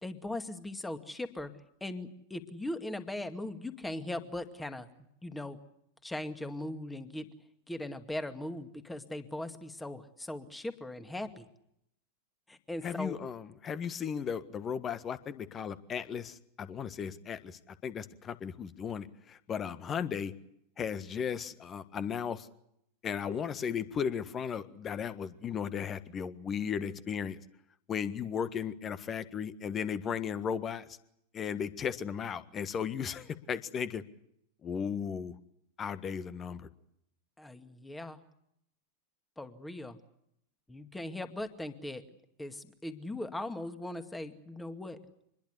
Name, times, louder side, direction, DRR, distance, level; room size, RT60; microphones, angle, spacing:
voice 1, 0.0-1.5 1.8-4.9 5.2-5.6 6.0-7.3 7.7-11.5 12.5-13.2 37.4-38.2 39.4-40.0 40.7-45.0, left 1 dB, 5° left, 8 dB, 2.3 m, -39 dB
voice 2, 12.8-20.3 20.8-22.5 23.0-27.4 27.9-30.9 31.3-34.0 34.6-35.3 35.8-36.7, left 7 dB, 25° left, 14 dB, 1.6 m, -36 dB
26.0 x 21.0 x 8.2 m, 0.75 s
figure-of-eight pair, 90°, 0 cm